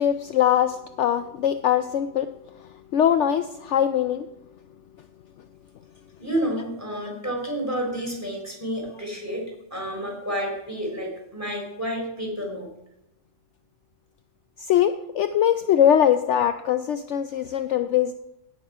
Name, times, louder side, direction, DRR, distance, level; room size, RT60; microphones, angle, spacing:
voice 1, 0.0-2.3 2.6-4.3 14.6-18.1, left 10 dB, 65° left, 10 dB, 0.8 m, -22 dB
voice 2, 6.2-12.7, equal, 10° right, 0 dB, 3.7 m, -30 dB
17.0 x 7.2 x 4.9 m, 0.84 s
omnidirectional pair, 1.4 m